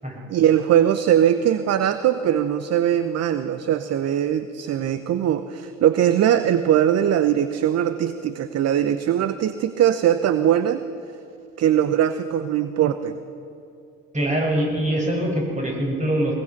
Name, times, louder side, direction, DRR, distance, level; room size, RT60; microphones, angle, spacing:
voice 1, 0.3-10.8 11.6-13.2, right 10 dB, 40° right, 12 dB, 0.9 m, -21 dB
voice 2, 14.1-16.3, right 1 dB, 20° right, -1 dB, 6.3 m, -23 dB
21.5 x 20.5 x 6.0 m, 2.6 s
hypercardioid pair, 65°, 39 cm